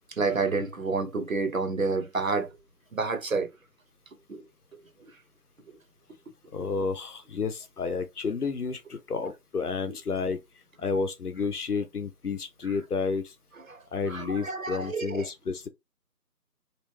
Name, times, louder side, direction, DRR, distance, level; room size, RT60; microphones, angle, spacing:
voice 1, 0.2-2.6 2.9-3.5 4.3-4.4 4.7-4.8 5.7-5.8 6.5-6.7 9.9-10.0 13.7-13.8 14.1-15.3, right 4 dB, 55° right, 0.6 m, -29 dB
voice 2, 6.5-10.4 10.8-13.3 13.9-15.7, left 4 dB, 70° left, 0.7 m, -31 dB
3.0 x 2.0 x 3.0 m
figure-of-eight pair, 165°, 48 cm